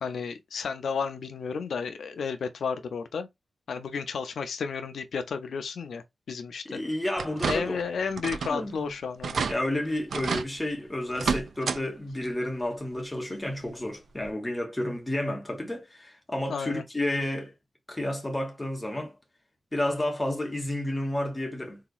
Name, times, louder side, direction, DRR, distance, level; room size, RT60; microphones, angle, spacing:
voice 1, 0.0-3.3 3.7-6.8 7.5-9.4 16.5-16.8, left 5 dB, 80° left, 0.5 m, -32 dB
voice 2, 6.6-7.8 8.5-8.9 9.5-17.5 17.9-19.1 19.7-21.8, left 1 dB, 10° left, 0.9 m, -31 dB
sound 1, 7.2-7.9 8.2-8.6 8.9-9.0 9.2-9.5 10.1-10.5 11.1-11.8 12.2-12.3 13.7-13.8 14.3-14.4, right 5 dB, 70° right, 0.4 m, -30 dB
3.9 x 2.8 x 2.2 m
wide cardioid pair, 170°, 0 cm